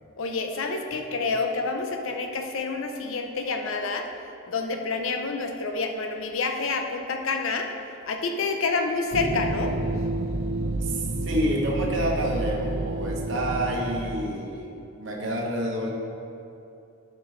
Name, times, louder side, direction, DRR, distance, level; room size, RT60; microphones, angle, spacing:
voice 1, 0.2-4.1 4.5-7.7 8.0-9.7, left 3 dB, 65° left, 4 dB, 0.6 m, -28 dB
sound 1, 9.1-14.3, right 2 dB, 80° right, 0.6 m, -30 dB
voice 2, 10.8-15.9, right 1 dB, 55° right, -2 dB, 1.0 m, -28 dB
9.4 x 5.3 x 3.2 m, 2.6 s
head